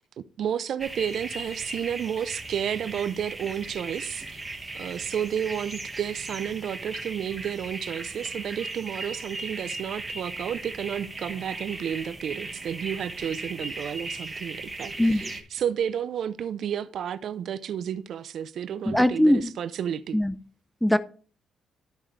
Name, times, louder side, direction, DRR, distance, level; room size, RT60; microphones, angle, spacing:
voice 1, 0.2-4.4 4.7-20.2, right 9 dB, 65° right, 0.5 m, -31 dB
sound 1, 0.8-15.4, right 2 dB, 15° right, 1.5 m, -37 dB
voice 2, 15.0-15.3 18.9-19.5 20.1-20.3 20.8-21.0, left 1 dB, 5° left, 0.6 m, -21 dB
12.0 x 4.9 x 3.2 m
cardioid pair, 90°, 0 cm